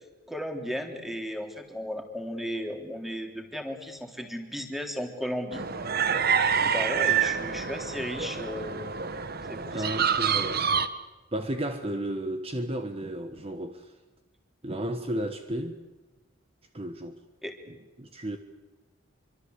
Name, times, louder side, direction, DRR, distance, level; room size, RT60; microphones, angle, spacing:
voice 1, 0.3-5.7 6.6-8.9 9.5-10.0 17.4-17.5, equal, ahead, 3.4 m, -35 dB
sound 1, 5.5-10.9, right 7 dB, 50° right, 1.4 m, -27 dB
voice 2, 9.7-10.7 11.3-13.9 14.6-15.8 16.7-17.2 17.7-18.4, right 1 dB, 30° right, 1.3 m, -33 dB
26.0 x 25.0 x 8.2 m
head